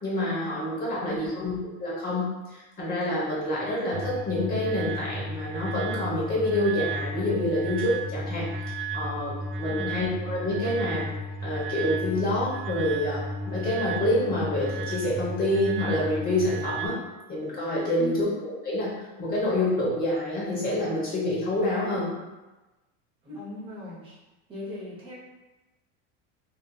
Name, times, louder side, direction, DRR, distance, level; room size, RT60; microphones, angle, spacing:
voice 1, 0.0-8.5 8.9-11.0 11.4-17.0 17.3-18.9 19.2-22.1, left 1 dB, 25° left, -6 dB, 0.9 m, -27 dB
voice 2, 1.0-1.6 9.7-10.1 18.0-18.3 23.2-24.2 24.5-25.1, left 1 dB, 15° right, -6 dB, 0.7 m, -39 dB
sound 1, 3.9-16.9, right 1 dB, 90° right, 0.5 m, -33 dB
2.7 x 2.7 x 2.2 m, 1.1 s
supercardioid pair, 140°, 38 cm